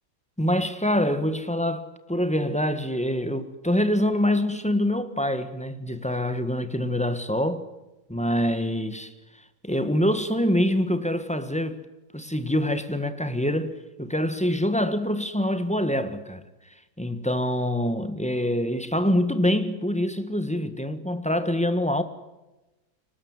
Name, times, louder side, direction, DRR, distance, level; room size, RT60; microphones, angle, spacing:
voice 1, 0.4-7.7 8.1-9.1 9.6-11.8 12.1-16.4 17.0-22.0, left 1 dB, 5° left, 1.2 m, -25 dB
24.5 x 19.5 x 9.6 m
omnidirectional pair, 2.1 m